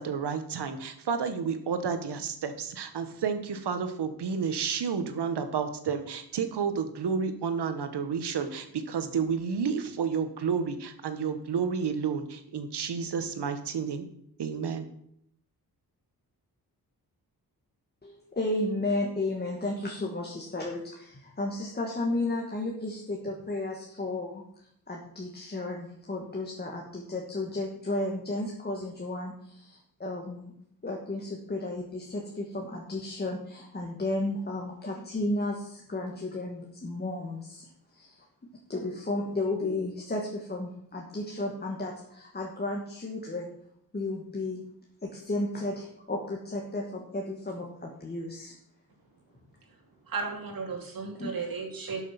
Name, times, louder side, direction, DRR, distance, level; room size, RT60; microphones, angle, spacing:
voice 1, 0.0-14.1 14.4-14.9, right 6 dB, 90° right, 9 dB, 1.4 m, -31 dB
voice 2, 18.0-24.4 24.9-30.5 30.8-38.2 38.7-43.5 43.9-44.6 45.0-48.5 51.2-51.3, left 2 dB, 25° left, -1 dB, 1.6 m, -33 dB
voice 3, 49.7-52.1, right 4 dB, 60° right, 1 dB, 2.8 m, -35 dB
12.0 x 6.5 x 5.9 m, 0.71 s
wide cardioid pair, 145°, 39 cm